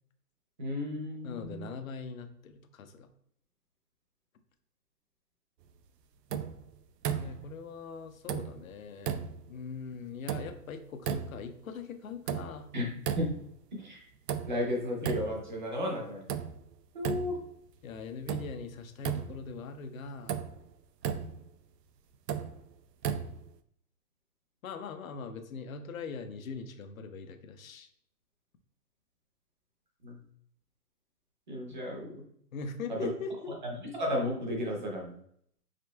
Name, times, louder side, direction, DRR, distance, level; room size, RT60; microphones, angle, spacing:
voice 1, 0.6-1.7 12.7-13.3 13.7-14.0 14.5-16.3 16.9-17.4 30.0-30.2 31.5-32.1 32.9-33.1 33.6-35.2, left 1 dB, 30° right, 0 dB, 0.7 m, -33 dB
voice 2, 1.2-3.1 7.0-12.7 17.8-20.4 24.6-27.9 32.5-33.5, left 4 dB, 55° left, 8 dB, 0.6 m, -41 dB
sound 1, 6.3-6.7 7.0-7.5 8.3-8.7 9.0-9.5 10.3-10.7 11.0-11.5 12.3-12.7 13.0-13.6 14.3-14.7 15.0-15.5 16.3-16.7 17.0-17.6 18.3-18.6 19.0-19.6 20.3-20.6 21.0-21.5 22.3-22.6 23.0-23.6, right 8 dB, 80° right, 0.6 m, -35 dB
5.1 x 3.6 x 2.2 m, 0.66 s
hypercardioid pair, 170°, 48 cm